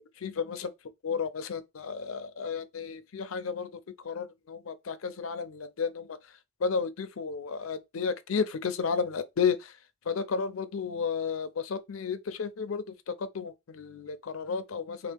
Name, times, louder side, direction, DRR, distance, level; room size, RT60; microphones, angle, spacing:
voice 1, 0.2-0.7 1.0-6.2 6.6-9.8 10.1-15.1, left 5 dB, 80° left, 0.5 m, -32 dB
3.4 x 2.8 x 3.4 m
head